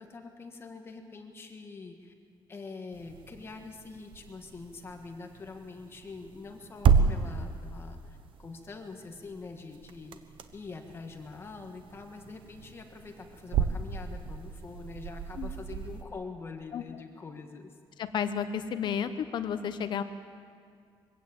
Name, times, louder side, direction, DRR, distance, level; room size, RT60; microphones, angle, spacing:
voice 1, 0.0-2.1 2.5-17.7, left 4 dB, 25° left, 4 dB, 1.6 m, -44 dB
sound 1, 2.9-16.0, right 6 dB, 60° right, 1.2 m, -33 dB
voice 2, 18.0-20.0, left 8 dB, 55° left, 10 dB, 1.1 m, -32 dB
23.5 x 16.0 x 8.9 m, 2.2 s
cardioid pair, 175°, 10 cm